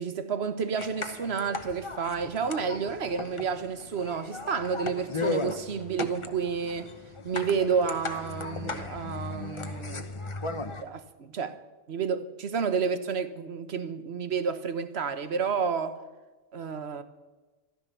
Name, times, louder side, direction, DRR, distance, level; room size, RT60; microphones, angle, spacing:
voice 1, 0.0-6.9 7.2-10.1 10.8-11.6 11.9-16.0 16.5-17.0, right 6 dB, 65° right, 1.4 m, -30 dB
sound 1, 0.8-10.8, left 3 dB, 30° left, 1.0 m, -36 dB
14.5 x 12.5 x 6.9 m
omnidirectional pair, 1.2 m